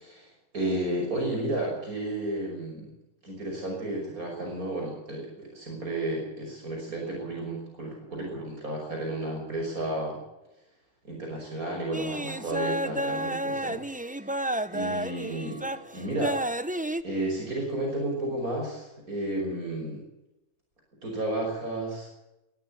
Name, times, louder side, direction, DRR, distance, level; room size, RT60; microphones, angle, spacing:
voice 1, 0.0-2.9 3.2-10.2 11.0-13.8 14.7-15.6 15.9-16.5 17.0-20.0 21.0-22.1, right 1 dB, 70° right, 0 dB, 6.2 m, -32 dB
sound 1, 11.9-17.0, right 1 dB, 10° right, 0.6 m, -31 dB
23.0 x 14.0 x 8.6 m, 0.93 s
omnidirectional pair, 1.6 m